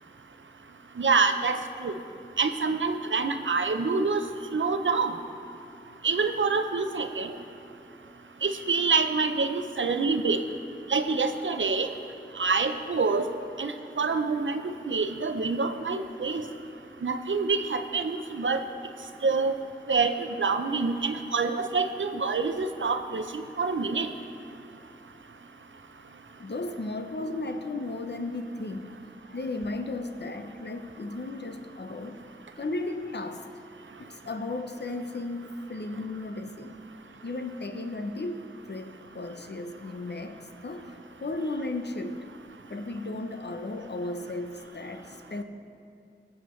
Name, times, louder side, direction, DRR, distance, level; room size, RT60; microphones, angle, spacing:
voice 1, 1.0-1.6 1.8-1.9 2.4-4.2 4.5-5.1 6.0-7.3 8.4-10.4 10.9-11.9 12.4-13.2 13.6-13.7 14.0-14.6 14.9-16.4 17.0-18.6 19.2-19.5 19.9-20.1 20.4-24.1, right 4 dB, 80° right, 8 dB, 0.6 m, -26 dB
voice 2, 26.4-29.0 29.3-33.5 34.0-36.8 37.2-42.2 42.7-45.4, left 2 dB, 60° left, 7 dB, 0.7 m, -35 dB
19.5 x 7.2 x 3.1 m, 2.5 s
wide cardioid pair, 40°, 19 cm